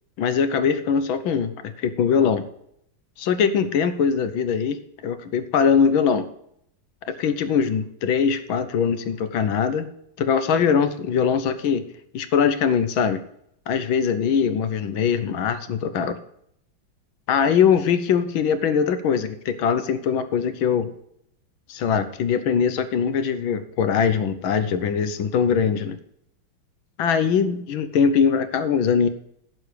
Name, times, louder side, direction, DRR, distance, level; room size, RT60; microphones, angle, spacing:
voice 1, 0.2-2.5 3.2-6.3 7.1-9.9 10.2-11.9 12.1-13.2 13.7-16.2 17.3-20.9 21.7-26.0 27.0-29.1, left 7 dB, 75° left, 11 dB, 1.7 m, -22 dB
10.5 x 6.8 x 6.6 m, 0.71 s
omnidirectional pair, 2.2 m